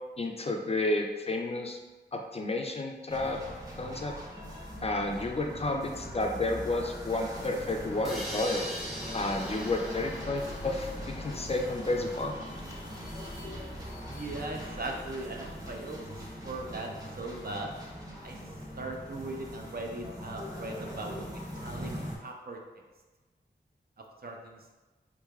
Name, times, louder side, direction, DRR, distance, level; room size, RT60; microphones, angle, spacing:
voice 1, 0.2-1.8 2.1-3.4 3.8-4.1 4.8-8.6 9.1-12.4, left 2 dB, 35° left, 2 dB, 0.4 m, -31 dB
sound 1, 3.1-22.2, equal, 20° right, 1.0 m, -41 dB
sound 2, 8.0-11.8, equal, ahead, 0.7 m, -41 dB
voice 2, 14.0-16.0 16.4-16.9 17.2-17.7 18.2-18.4 18.8-21.9 22.2-22.6 24.2-24.7, right 2 dB, 55° right, 1 dB, 0.5 m, -39 dB
3.6 x 3.2 x 2.3 m, 1.2 s
wide cardioid pair, 75°, 19 cm